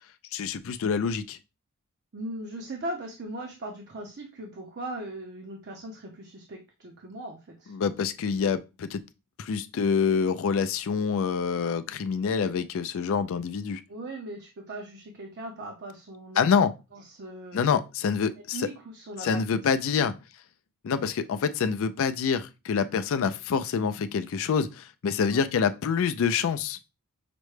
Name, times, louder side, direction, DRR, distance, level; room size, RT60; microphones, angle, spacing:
voice 1, 0.3-1.4 7.7-9.0 9.4-13.8 16.4-16.7 17.5-18.7 19.2-20.1 20.8-26.8, left 6 dB, 60° left, 0.4 m, -26 dB
voice 2, 2.1-7.7 13.9-16.6 16.9-17.8 18.5-19.4 19.9-20.1 25.3-25.4, right 1 dB, 50° right, 0.6 m, -39 dB
5.9 x 2.1 x 3.1 m
head